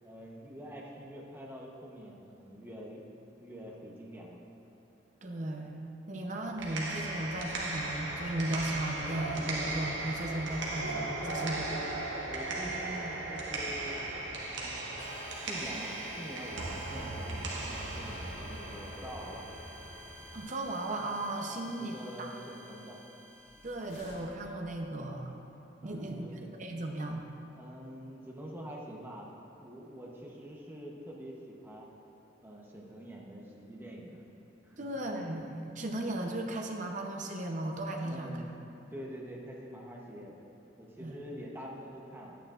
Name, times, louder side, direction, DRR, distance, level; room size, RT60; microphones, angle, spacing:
voice 1, 0.0-3.0 3.4-4.4 11.2-12.0 12.2-14.0 14.5-14.8 15.3-19.5 21.5-23.0 25.8-26.4 27.5-29.3 29.6-31.9 32.4-34.2 34.6-35.0 38.0-38.5 38.9-40.4 40.8-42.4, equal, 10° right, -3 dB, 0.9 m, -46 dB
voice 2, 5.2-11.7 20.3-22.4 23.6-25.3 25.8-27.2 34.8-38.4 41.0-41.2, right 1 dB, 40° right, 2 dB, 0.8 m, -36 dB
sound 1, 6.4-20.4, right 2 dB, 75° right, 1.2 m, -37 dB
sound 2, 15.0-24.4, equal, 15° left, 1.5 m, -51 dB
sound 3, 23.3-25.1, left 1 dB, 70° left, 1.8 m, -55 dB
11.0 x 9.1 x 2.5 m, 2.9 s
head